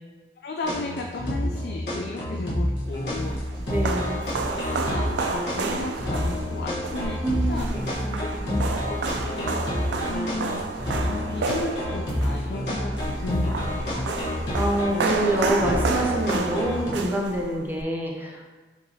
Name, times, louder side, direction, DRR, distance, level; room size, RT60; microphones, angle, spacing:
voice 1, 0.4-3.4 4.3-7.7 8.2-9.5 10.0-10.6 11.0-14.2, left 2 dB, 60° left, 1 dB, 0.3 m, -34 dB
sound 1, 0.6-16.9, left 1 dB, 90° left, 1.2 m, -29 dB
sound 2, 2.8-17.8, right 3 dB, 85° right, 0.4 m, -31 dB
voice 2, 3.7-4.2 7.2-8.6 14.5-18.5, right 1 dB, 10° right, -1 dB, 0.5 m, -27 dB
5.9 x 2.7 x 2.7 m, 1.3 s
head